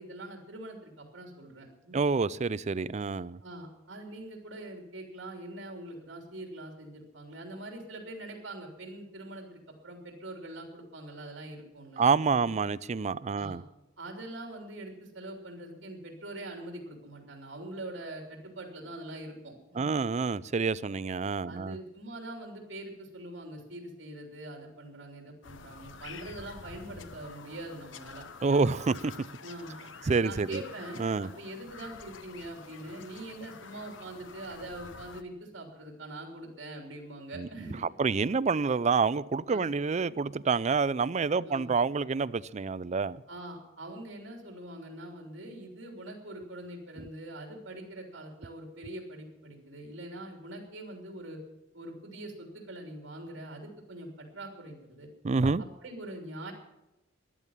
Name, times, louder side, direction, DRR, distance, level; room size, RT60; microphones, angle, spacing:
voice 1, 0.0-2.0 3.4-12.5 13.3-13.6 14.0-19.9 21.4-28.2 28.9-29.0 29.4-29.7 30.2-37.8 39.5-39.7 41.4-41.7 43.3-51.4 51.7-55.1 55.8-56.5, right 1 dB, 70° right, 3.2 m, -43 dB
voice 2, 1.9-3.4 12.0-13.6 19.8-21.8 28.4-29.1 30.1-30.6 31.0-31.3 37.3-37.5 38.0-43.2 55.2-55.6, right 4 dB, 35° right, 0.4 m, -28 dB
Bird vocalization bird call bird song, 25.4-35.2, left 5 dB, 80° left, 0.9 m, -48 dB
14.5 x 11.0 x 7.3 m
head